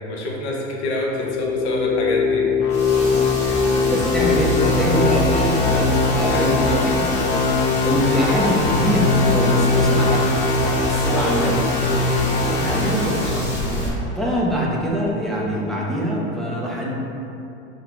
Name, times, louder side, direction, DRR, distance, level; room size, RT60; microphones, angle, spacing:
voice 1, 0.0-2.5 6.2-6.9 11.0-11.3, left 1 dB, 70° left, -2 dB, 1.0 m, -26 dB
sound 1, 1.1-14.2, left 3 dB, 50° left, 0.7 m, -21 dB
sound 2, 2.7-13.9, equal, 20° left, 1.1 m, -30 dB
voice 2, 3.9-7.2 7.8-10.4 10.9-11.6 12.5-13.5 14.2-16.9, equal, ahead, -5 dB, 0.7 m, -23 dB
4.2 x 2.8 x 4.5 m, 2.8 s
hypercardioid pair, 100°, 35 cm